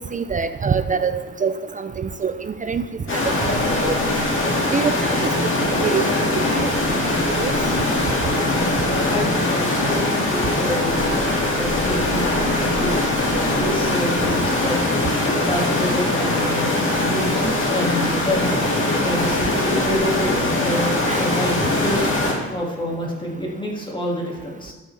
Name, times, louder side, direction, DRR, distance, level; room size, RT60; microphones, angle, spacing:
voice 1, 0.1-2.8 3.1-4.1 4.7-5.1 5.8-6.7 7.3-7.5 21.1-21.3, right 6 dB, 25° right, 10 dB, 0.4 m, -25 dB
sound 1, 3.1-22.3, left 2 dB, 40° left, 2.4 m, -21 dB
voice 2, 8.8-11.0 11.4-13.1 13.5-14.8 15.1-18.5 19.0-24.7, equal, 15° left, -3 dB, 2.1 m, -28 dB
12.0 x 6.2 x 3.3 m, 1.2 s
cardioid pair, 90°, 30 cm